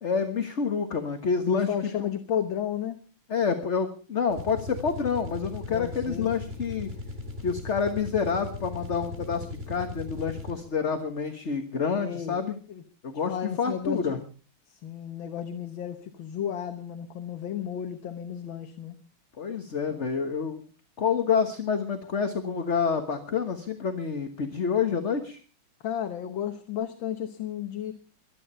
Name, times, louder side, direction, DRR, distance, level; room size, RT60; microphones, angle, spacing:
voice 1, 0.0-1.7 2.0-2.1 3.3-6.9 7.4-12.6 13.0-14.2 19.4-20.6 21.0-25.4, left 6 dB, 35° left, 6 dB, 1.5 m, -28 dB
voice 2, 1.5-3.0 5.7-6.3 12.0-12.4 12.7-12.8 13.3-14.1 14.7-19.0 25.8-27.9, left 9 dB, 65° left, 8 dB, 1.9 m, -33 dB
sound 1, 4.3-10.8, left 2 dB, 30° right, 2.4 m, -38 dB
23.5 x 9.7 x 5.6 m, 0.39 s
omnidirectional pair, 2.3 m